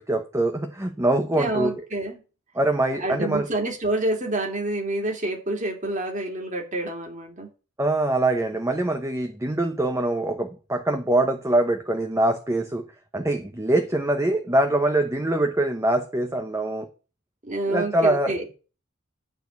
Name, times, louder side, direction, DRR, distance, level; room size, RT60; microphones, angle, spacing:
voice 1, 0.0-1.7 2.5-3.5 7.8-12.8 13.1-16.9 17.7-18.3, right 1 dB, 15° right, 5 dB, 0.9 m, -23 dB
voice 2, 1.3-2.2 3.0-7.5 17.4-18.6, right 2 dB, 35° right, 2 dB, 2.9 m, -28 dB
11.5 x 4.4 x 8.2 m, 0.34 s
head